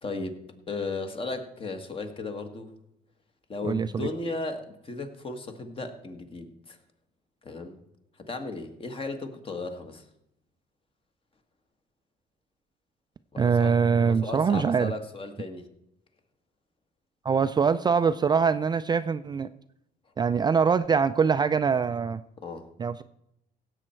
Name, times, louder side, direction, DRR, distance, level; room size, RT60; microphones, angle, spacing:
voice 1, 0.0-2.7 3.5-6.8 7.4-7.8 8.2-10.1 13.3-15.7 22.4-22.7, left 3 dB, 30° left, 7 dB, 1.6 m, -36 dB
voice 2, 3.6-4.1 13.4-14.9 17.2-19.5 20.2-22.2 22.8-23.0, right 6 dB, 25° right, 11 dB, 0.4 m, -23 dB
16.5 x 7.8 x 4.5 m, 0.82 s
cardioid pair, 110°, 17 cm